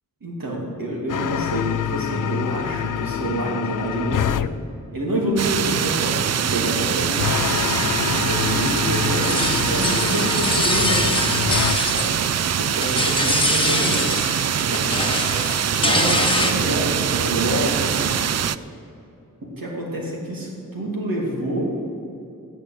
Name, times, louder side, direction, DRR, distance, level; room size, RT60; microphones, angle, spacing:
voice 1, 0.2-4.4 4.9-7.3 7.9-11.1 11.9-12.2 12.6-14.0 14.5-15.0 15.5-18.3 19.4-21.7, right 1 dB, 90° right, -2 dB, 2.8 m, -27 dB
sound 1, 1.1-4.5 7.2-11.8, left 10 dB, 70° left, 0.5 m, -26 dB
sound 2, 5.4-18.6, right 8 dB, 50° right, 0.4 m, -23 dB
sound 3, 9.1-12.4 12.7-14.4 14.7-16.5, left 2 dB, 15° left, 1.1 m, -24 dB
14.0 x 7.4 x 8.3 m, 2.7 s
wide cardioid pair, 75°, 33 cm